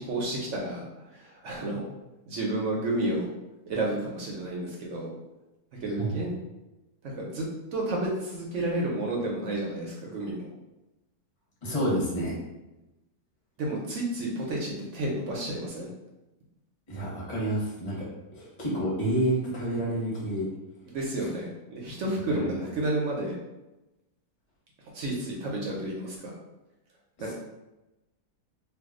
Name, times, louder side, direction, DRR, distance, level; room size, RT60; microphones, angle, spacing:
voice 1, 0.0-1.8 2.3-3.3 3.7-5.1 5.8-6.3 7.0-10.5 13.6-15.9 20.9-23.4 24.9-26.3 27.2-27.3, right 1 dB, 65° right, -2 dB, 0.8 m, -31 dB
voice 2, 11.6-12.4 16.9-18.1 18.3-20.5 21.2-21.3 22.3-22.5 27.3-27.4, right 1 dB, 30° left, -5 dB, 0.8 m, -29 dB
2.6 x 2.2 x 3.6 m, 0.98 s
omnidirectional pair, 1.7 m